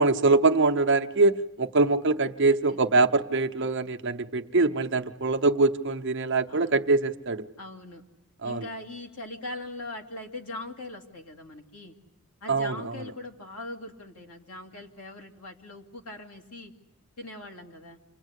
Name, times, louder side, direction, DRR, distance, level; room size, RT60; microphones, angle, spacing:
voice 1, 0.0-7.4 8.4-8.6 12.5-12.9, right 3 dB, 55° right, 0.9 m, -23 dB
voice 2, 6.5-6.8 7.6-8.0 8.4-12.0 12.4-16.7 17.2-18.0, left 2 dB, 80° left, 2.7 m, -41 dB
28.5 x 21.0 x 8.2 m
head